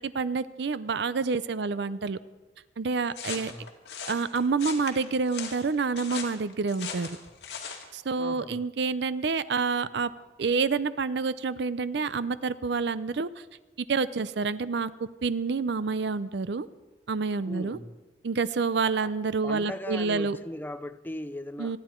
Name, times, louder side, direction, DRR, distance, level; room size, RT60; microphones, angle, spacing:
voice 1, 0.0-2.2 2.8-3.5 4.1-7.1 7.9-10.1 10.4-13.4 13.8-14.9 15.2-16.7 17.1-17.8 18.2-20.4 21.6-21.8, right 4 dB, 60° right, 0.5 m, -28 dB
sound 1, 3.1-7.9, left 6 dB, 55° left, 2.3 m, -38 dB
voice 2, 3.3-3.7 8.2-8.6 17.5-18.0 19.0-19.1 19.4-21.8, left 1 dB, 10° left, 0.5 m, -38 dB
27.0 x 10.5 x 4.4 m
head